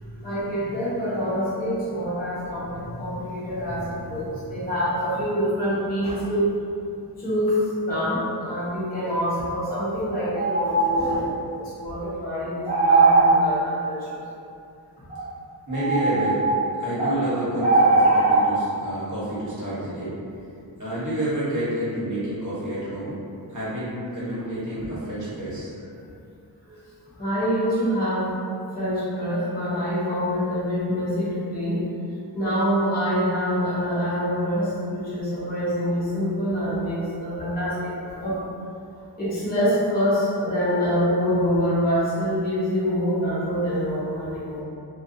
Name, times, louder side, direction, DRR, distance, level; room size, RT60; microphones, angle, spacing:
voice 1, 0.2-6.5 7.2-7.6 7.8-14.0 27.2-28.3 28.7-31.8 32.3-38.4 39.2-44.6, equal, 25° left, -12 dB, 0.7 m, -25 dB
sound 1, 2.9-3.0 10.3-11.1 12.6-13.4 15.1-15.2 15.7-17.2 17.6-18.5, right 3 dB, 20° right, 0.4 m, -19 dB
voice 2, 15.7-16.4 16.8-20.2 20.8-23.2 23.5-25.7 26.7-26.8, right 1 dB, 50° right, -11 dB, 1.1 m, -29 dB
2.5 x 2.3 x 2.6 m, 2.5 s
wide cardioid pair, 105°, 39 cm